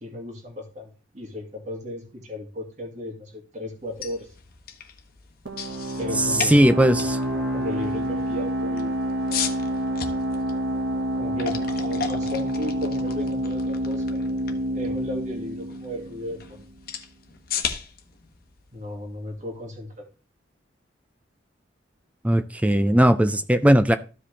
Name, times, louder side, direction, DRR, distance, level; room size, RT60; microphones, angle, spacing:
voice 1, 0.0-4.3 6.0-7.0 7.5-9.0 9.3-9.4 11.1-16.7 18.7-20.0, left 1 dB, 40° right, 2.1 m, -35 dB
sound 1, 3.8-19.7, left 7 dB, 50° left, 1.1 m, -37 dB
sound 2, 5.5-16.8, equal, 70° right, 1.9 m, -28 dB
voice 2, 6.4-7.2 22.2-24.0, equal, 5° right, 0.4 m, -18 dB
13.5 x 5.1 x 3.3 m
head